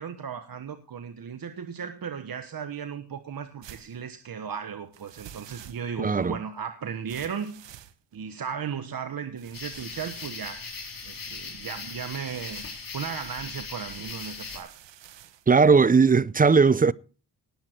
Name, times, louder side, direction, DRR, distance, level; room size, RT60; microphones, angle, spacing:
voice 1, 0.0-7.6 8.1-10.6 11.0-12.6 12.9-14.7, right 7 dB, 55° right, 1.3 m, -36 dB
sound 1, 3.6-4.0 4.9-6.1 7.1-8.4 9.4-11.4 12.1-12.9 13.9-15.5, right 11 dB, 90° right, 1.1 m, -49 dB
voice 2, 6.0-6.4 15.5-16.9, right 5 dB, 20° right, 0.5 m, -18 dB
sound 2, 9.5-14.6, left 4 dB, 50° left, 4.0 m, -39 dB
19.0 x 8.5 x 4.5 m
cardioid pair, 75°, 42 cm